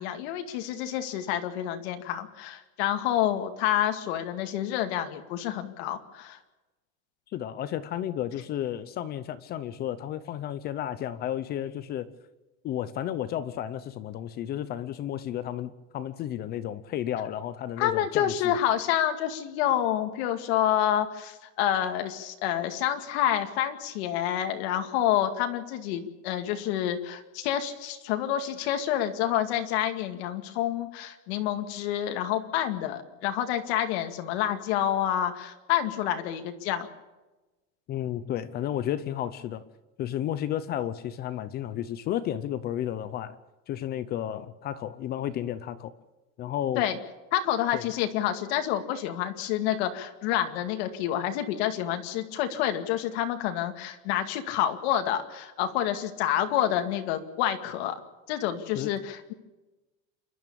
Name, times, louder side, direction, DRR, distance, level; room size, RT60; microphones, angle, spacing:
voice 1, 0.0-6.4 17.8-36.9 46.8-47.0 47.3-58.0 58.3-59.3, left 11 dB, 60° left, 2.2 m, -28 dB
voice 2, 7.3-12.1 12.6-18.6 37.9-39.6 40.0-43.4 43.7-45.9 46.4-46.8 47.7-47.9 58.7-58.9, left 11 dB, 25° left, 0.7 m, -32 dB
29.0 x 12.5 x 8.6 m
supercardioid pair, 175°, 37 cm